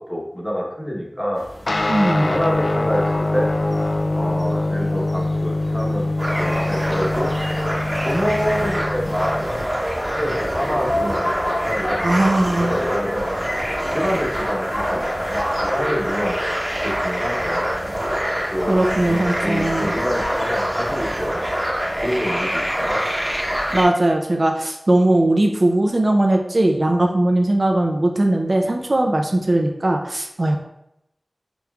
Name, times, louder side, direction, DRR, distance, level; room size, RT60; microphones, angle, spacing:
voice 1, 0.0-1.4 2.2-3.1 3.3-3.5 4.1-6.1 6.4-7.3 8.0-11.3 11.6-12.3 12.6-13.4 13.9-16.4 16.8-17.7 18.5-21.5 22.0-23.0, equal, 15° left, -2 dB, 1.0 m, -27 dB
sound 1, 1.3-20.6, left 1 dB, 30° left, 1.3 m, -34 dB
sound 2, 1.7-9.5, left 2 dB, 70° left, 0.3 m, -23 dB
voice 2, 1.9-2.3 12.0-12.8 18.7-19.9 23.7-30.6, right 1 dB, 55° right, 2 dB, 0.5 m, -19 dB
sound 3, 6.2-23.8, equal, 20° right, 1.0 m, -25 dB
5.2 x 3.0 x 2.3 m, 0.82 s
wide cardioid pair, 60°, 0 cm